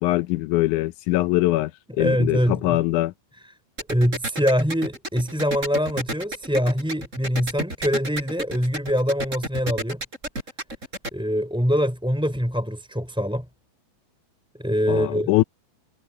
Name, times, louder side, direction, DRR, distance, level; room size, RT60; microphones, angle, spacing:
voice 1, 0.0-1.7 2.0-3.1 14.9-15.4, left 17 dB, 85° left, 1.7 m, -22 dB
voice 2, 2.0-2.8 3.4-3.6 3.9-10.0 11.1-13.5 14.6-15.3, equal, ahead, 4.0 m, -24 dB
sound 1, 3.8-11.1, right 1 dB, 20° right, 6.8 m, -30 dB
omnidirectional pair, 4.3 m